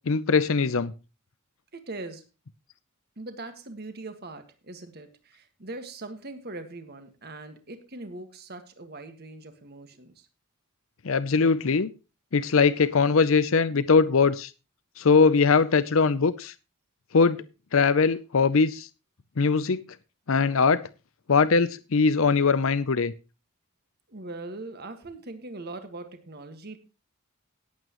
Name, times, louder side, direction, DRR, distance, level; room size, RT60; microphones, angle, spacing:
voice 1, 0.1-0.9 11.0-11.9 12.3-14.5 15.0-16.5 17.1-17.4 17.7-18.9 19.4-19.8 20.3-20.8 21.3-23.1, left 4 dB, 65° left, 15 dB, 0.6 m, -21 dB
voice 2, 1.7-2.2 3.2-10.3 24.1-26.8, right 2 dB, 45° right, 8 dB, 1.8 m, -41 dB
18.0 x 8.3 x 3.1 m, 0.30 s
head